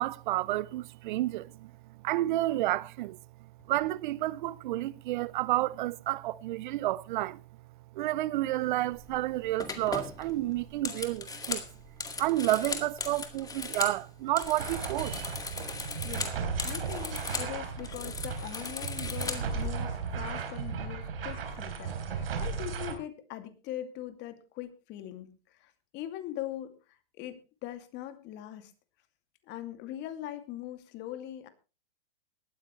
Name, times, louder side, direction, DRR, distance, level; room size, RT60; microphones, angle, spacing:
voice 1, 0.0-1.7 2.0-3.2 3.7-7.4 7.9-11.6 12.2-15.4, right 16 dB, 55° right, 0.7 m, -30 dB
sound 1, 9.0-9.2 9.6-14.0 14.3-17.5 17.8-19.7, left 4 dB, 10° left, 2.1 m, -38 dB
sound 2, 14.6-22.9, right 6 dB, 75° right, 3.9 m, -36 dB
voice 2, 16.0-16.4 16.6-28.7 29.5-31.5, left 13 dB, 35° left, 2.5 m, -41 dB
18.0 x 13.0 x 3.2 m
hypercardioid pair, 120°, 30 cm